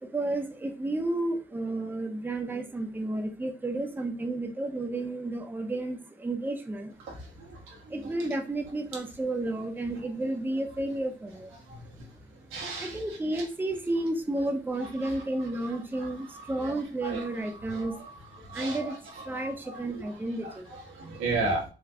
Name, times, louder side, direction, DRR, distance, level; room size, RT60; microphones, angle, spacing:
voice 1, 0.0-7.0 7.2-7.3 7.9-11.6 12.8-17.9 18.5-19.0 19.2-20.7, right 2 dB, 10° right, 4 dB, 0.6 m, -32 dB
voice 2, 7.5-7.8 11.7-11.8 12.5-13.0 13.3-13.4 16.6-16.7 17.0-17.2 17.7-18.0 18.4-19.8 20.4-20.5 20.9-21.6, right 2 dB, 90° right, -2 dB, 1.2 m, -34 dB
4.0 x 2.2 x 2.7 m, 0.35 s
cardioid pair, 90°, 20 cm